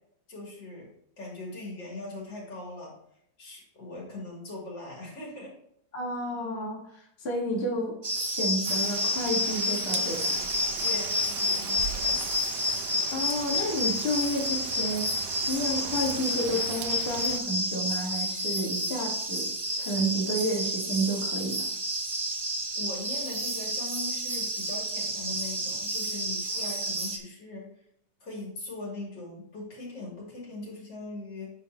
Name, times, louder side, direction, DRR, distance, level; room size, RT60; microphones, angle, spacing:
voice 1, 0.3-0.9 1.2-3.0 3.4-5.5 10.8-12.2 22.7-27.7 28.2-31.5, left 2 dB, 80° left, -4 dB, 3.6 m, -40 dB
voice 2, 5.9-10.4 13.1-19.5 19.8-21.7, equal, 35° left, -3 dB, 2.0 m, -31 dB
sound 1, 8.0-27.2, equal, 30° right, 0.6 m, -30 dB
Rain, 8.7-17.4, right 9 dB, 80° right, 1.2 m, -40 dB
9.2 x 5.9 x 3.0 m, 0.70 s
omnidirectional pair, 1.9 m